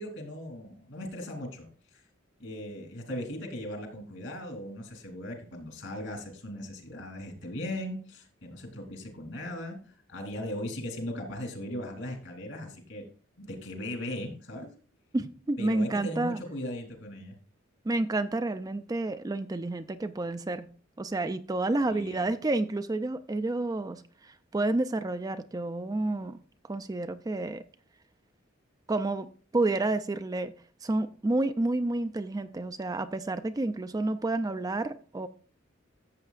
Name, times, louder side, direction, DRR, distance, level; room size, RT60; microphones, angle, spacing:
voice 1, 0.0-1.7 1.9-2.0 2.4-9.8 10.1-13.0 13.4-14.7 15.6-17.3 21.8-22.3, left 1 dB, 70° left, 2.9 m, -38 dB
voice 2, 15.1-16.4 17.8-20.7 21.0-26.4 26.7-27.6 28.9-30.5 30.8-35.3, right 2 dB, 20° right, 0.4 m, -30 dB
13.5 x 7.6 x 2.4 m
head